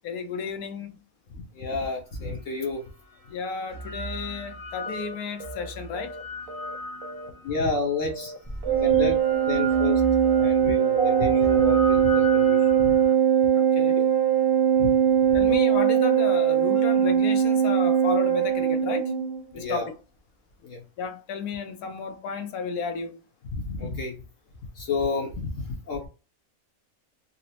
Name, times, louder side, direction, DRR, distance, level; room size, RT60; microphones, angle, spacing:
voice 1, 0.0-0.9 3.3-6.2 13.5-14.0 15.3-19.1 19.5-19.9 21.0-23.2, left 5 dB, 85° left, 1.1 m, -33 dB
voice 2, 1.4-2.8 7.4-8.3 8.8-9.2 9.5-10.0 10.4-12.9 13.9-14.0 14.8-14.9 15.4-15.6 19.5-19.9 20.6-20.8 23.5-24.2 24.8-26.1, left 3 dB, 65° left, 1.1 m, -30 dB
Prepared for Horror, 2.4-2.5 3.4-7.7 8.4-13.1, equal, 25° left, 0.5 m, -37 dB
sound 1, 4.9-5.1 5.4-5.7 5.9-7.3 7.6-7.8 8.1-8.4 8.6-8.9 9.2-9.4 9.7-10.0 10.2-10.5 10.8-11.1 11.3-11.6, right 1 dB, 80° right, 1.1 m, -40 dB
Organ, 8.6-19.4, right 9 dB, 35° right, 0.4 m, -21 dB
3.9 x 2.0 x 2.8 m
omnidirectional pair, 1.5 m